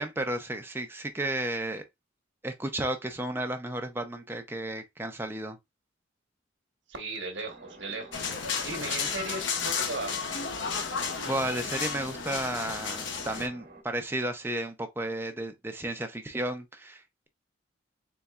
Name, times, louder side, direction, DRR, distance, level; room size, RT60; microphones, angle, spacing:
voice 1, 0.0-1.8 2.4-5.6 11.2-17.3, right 1 dB, 10° right, 0.6 m, -33 dB
voice 2, 6.9-10.2, right 2 dB, 70° right, 1.2 m, -37 dB
sound 1, 7.4-13.8, right 2 dB, 50° right, 1.1 m, -50 dB
sound 2, 8.1-13.5, left 6 dB, 75° left, 0.7 m, -33 dB
4.1 x 3.2 x 2.3 m
head